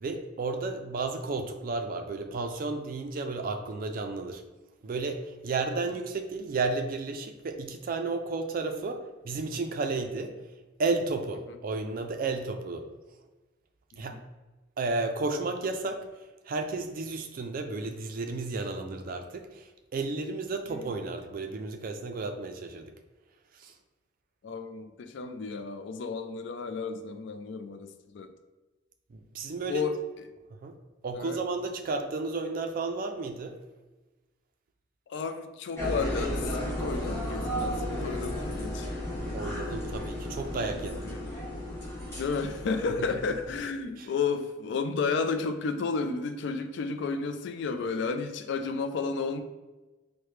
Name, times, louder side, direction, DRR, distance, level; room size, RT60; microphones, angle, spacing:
voice 1, 0.0-4.4 4.8-10.4 10.8-12.8 14.0-14.2 14.8-16.1 16.5-22.9 23.6-23.7 29.1-29.8 30.6-30.8 31.0-33.6 39.3-41.1 43.1-43.2 44.0-44.1, right 3 dB, 50° right, 6 dB, 0.4 m, -32 dB
voice 2, 24.4-28.3 29.7-29.9 31.1-31.4 35.1-38.9 41.1-41.3 42.2-49.4, left 4 dB, 65° left, 8 dB, 0.3 m, -32 dB
sound 1, 35.8-43.6, equal, 15° left, 1.3 m, -34 dB
4.7 x 2.1 x 3.1 m, 1.2 s
head